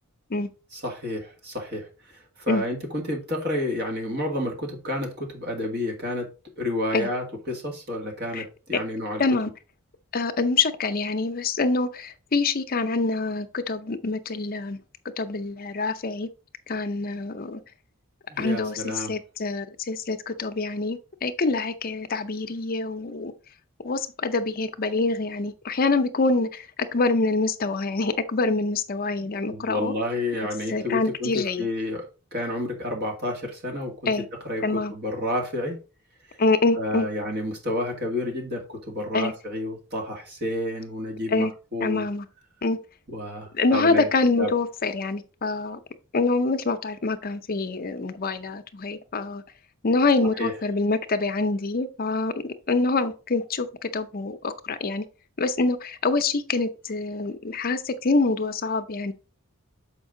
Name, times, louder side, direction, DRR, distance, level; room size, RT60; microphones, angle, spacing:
voice 1, 0.7-6.3 6.6-9.2 18.3-19.2 29.5-34.1 34.5-35.8 36.3-36.4 36.8-42.1 43.1-44.1 44.4-44.5 50.4-50.5, left 1 dB, 50° right, 2.1 m, -30 dB
voice 2, 9.2-9.5 10.1-14.8 15.2-16.3 16.7-17.6 18.4-23.3 23.8-29.9 30.7-31.7 34.1-34.3 34.6-34.9 36.4-37.1 39.1-39.3 41.3-41.5 41.8-42.3 42.6-42.8 43.5-45.8 46.1-49.4 49.8-52.3 52.7-55.1 55.4-59.1, left 3 dB, 45° left, 0.6 m, -25 dB
7.2 x 5.2 x 3.8 m
head